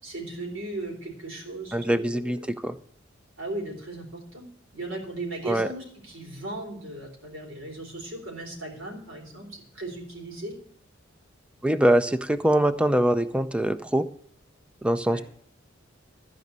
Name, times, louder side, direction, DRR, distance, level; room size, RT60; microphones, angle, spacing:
voice 1, 0.0-2.5 3.4-4.5 4.7-10.5 15.0-15.2, right 2 dB, 80° right, 1 dB, 3.9 m, -37 dB
voice 2, 1.7-2.8 5.5-5.7 11.6-14.1 14.8-15.2, right 1 dB, 5° right, 12 dB, 0.5 m, -23 dB
13.5 x 5.2 x 8.1 m, 0.62 s
head